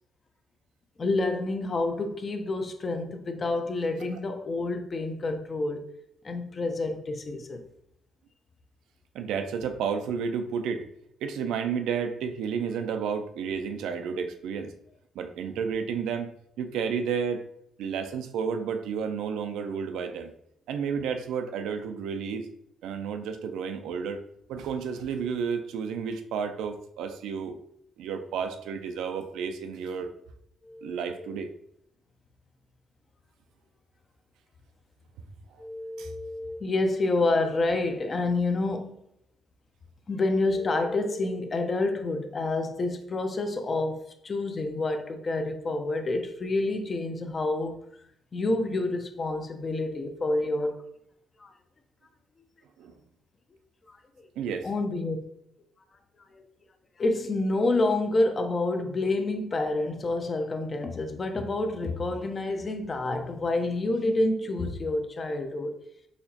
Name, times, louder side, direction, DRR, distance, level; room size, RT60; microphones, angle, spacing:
voice 1, 1.0-5.8 6.2-7.6 30.6-31.0 35.6-39.0 40.1-47.8 48.3-50.8 51.4-51.5 53.9-54.0 54.6-55.2 56.3-56.4 57.0-65.8, left 2 dB, 35° left, 0.5 m, -28 dB
voice 2, 9.1-10.9 11.2-14.7 15.2-16.3 16.6-17.4 17.8-20.3 20.7-22.5 22.8-24.2 24.5-27.6 28.0-30.1 30.8-31.5 36.0-36.1 52.8-52.9 54.4-54.7, right 6 dB, 85° right, 0.4 m, -31 dB
4.1 x 2.9 x 2.8 m
cardioid pair, 90°, 0 cm